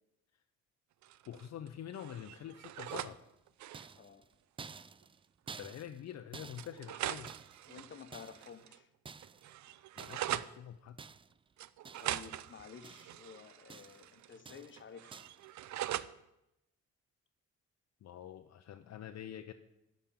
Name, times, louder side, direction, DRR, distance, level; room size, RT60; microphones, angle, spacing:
sound 1, 1.0-1.7 1.9-3.2 3.5-3.9 5.0-5.1 5.5-5.6 6.6-8.8 9.1-10.5 11.6-14.4 14.6-16.1, right 13 dB, 70° right, 0.5 m, -42 dB
voice 1, 1.3-3.2 5.6-7.3 10.0-11.0 18.0-19.5, left 10 dB, 60° left, 0.7 m, -46 dB
sound 2, 2.9-3.3 3.7-7.8 8.1-8.6 9.1-9.5 10.0-10.4 11.0-11.5 11.8-12.3 12.6-13.3 13.7-14.1 14.5-14.8 15.1-15.5, right 5 dB, 20° right, 0.3 m, -52 dB
voice 2, 7.7-8.9 12.0-15.3, left 6 dB, 40° left, 1.1 m, -52 dB
11.5 x 5.3 x 8.7 m
cardioid pair, 90°, 30 cm